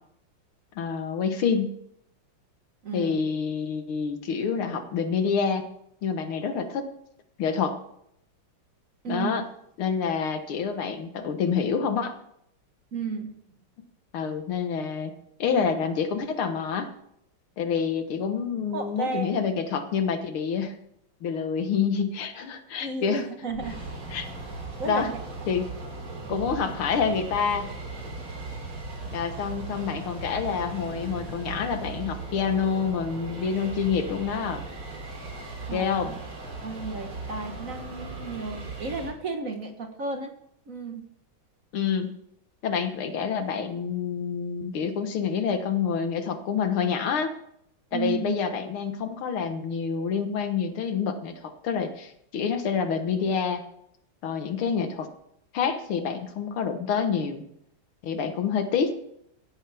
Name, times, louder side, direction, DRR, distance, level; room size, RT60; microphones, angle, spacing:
voice 1, 0.8-1.7 2.9-5.7 6.0-6.9 7.4-7.8 9.1-9.4 9.8-12.2 14.1-15.1 15.4-16.9 17.6-20.7 21.2-23.3 24.1-24.3 24.9-25.1 25.5-25.7 26.3-27.7 29.1-34.6 35.7-36.1 41.7-42.1 42.6-47.4 47.9-53.6 54.2-55.1 55.5-57.4 58.0-59.0, left 6 dB, 85° left, 7 dB, 2.1 m, -27 dB
voice 2, 2.8-3.2 9.0-9.3 12.9-13.3 15.4-15.7 18.7-19.3 22.8-23.7 24.8-25.2 26.1-26.5 35.7-36.2 36.6-40.3 40.7-41.0 47.9-48.4, right 4 dB, 45° right, 5 dB, 1.5 m, -33 dB
sound 1, 23.5-39.1, right 3 dB, 75° right, 4.3 m, -38 dB
16.5 x 13.5 x 3.5 m, 0.75 s
omnidirectional pair, 2.3 m